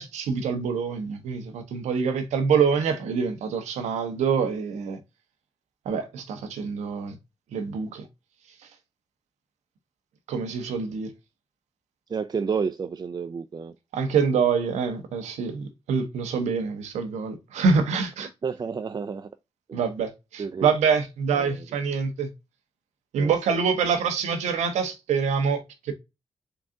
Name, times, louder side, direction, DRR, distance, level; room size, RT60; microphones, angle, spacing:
voice 1, 0.0-5.0 5.9-7.1 7.5-8.1 10.3-11.1 13.9-18.3 19.7-22.3 23.1-25.9, right 5 dB, 85° right, 0.7 m, -26 dB
voice 2, 12.1-13.7 18.4-19.3 19.7-19.8 20.4-20.7 21.3-21.6 23.2-23.3, right 5 dB, 35° right, 0.3 m, -30 dB
3.7 x 2.3 x 3.6 m
supercardioid pair, 50°, 12 cm